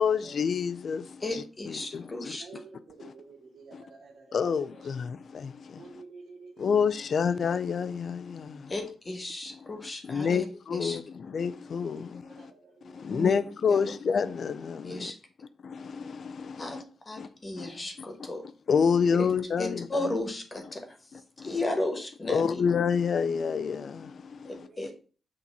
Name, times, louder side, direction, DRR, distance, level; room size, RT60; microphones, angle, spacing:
voice 1, 0.0-2.3 3.0-3.1 3.7-3.8 4.3-6.0 6.6-8.7 9.5-9.7 10.0-12.5 12.8-15.1 15.6-16.8 17.2-17.3 17.6-17.8 18.2-18.3 18.7-20.1 21.4-21.5 22.3-24.7, left 6 dB, 55° left, 0.3 m, -29 dB
voice 2, 1.2-2.5 8.7-10.5 10.7-11.0 13.1-13.4 13.7-13.8 14.8-15.2 16.6-18.4 19.2-19.3 19.6-21.0 21.4-22.6 24.4-24.9, left 2 dB, 25° left, 1.1 m, -34 dB
voice 3, 2.4-4.4 4.7-4.8 5.8-6.7 11.9-13.1 24.6-24.9, right 4 dB, 80° right, 2.0 m, -50 dB
6.1 x 2.9 x 5.3 m
wide cardioid pair, 145°, 0 cm